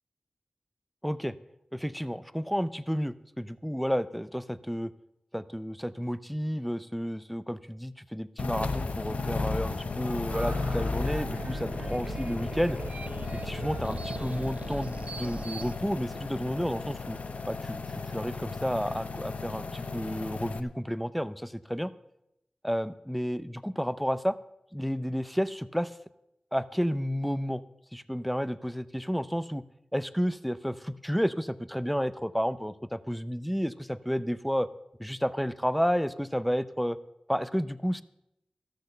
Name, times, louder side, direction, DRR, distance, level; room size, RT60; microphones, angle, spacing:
voice 1, 1.0-1.3 1.7-4.9 5.3-12.8 13.4-17.2 17.5-21.9 22.6-24.4 24.7-26.0 26.5-27.6 27.9-29.6 29.9-34.7 35.0-37.0 37.3-38.0, equal, ahead, 15 dB, 0.6 m, -31 dB
sound 1, 8.4-20.6, left 4 dB, 75° left, 0.7 m, -35 dB
sound 2, 10.3-15.7, right 4 dB, 65° right, 0.5 m, -40 dB
13.5 x 6.5 x 6.7 m, 0.85 s
cardioid pair, 45°, 2 cm